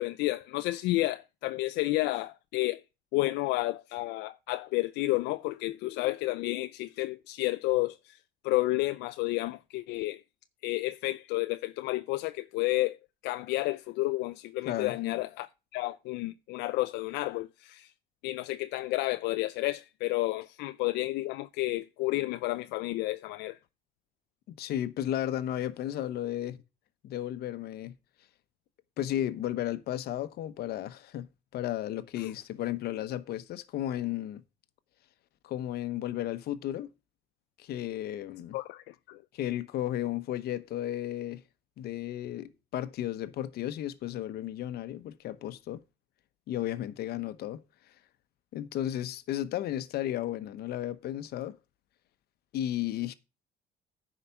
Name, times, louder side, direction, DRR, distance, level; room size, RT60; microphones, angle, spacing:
voice 1, 0.0-2.8 3.1-8.2 8.4-10.2 10.6-13.0 13.2-17.9 18.2-23.6 32.2-32.3 38.5-39.2, left 19 dB, 90° left, 0.4 m, -31 dB
voice 2, 14.6-15.0 24.5-26.6 27.0-27.9 29.0-31.3 31.5-34.4 35.4-36.9 37.6-38.6 39.3-41.4 41.8-45.8 46.5-47.6 48.5-51.6 52.5-53.1, left 12 dB, 70° left, 1.0 m, -34 dB
9.9 x 5.0 x 6.9 m
cardioid pair, 110°, 17 cm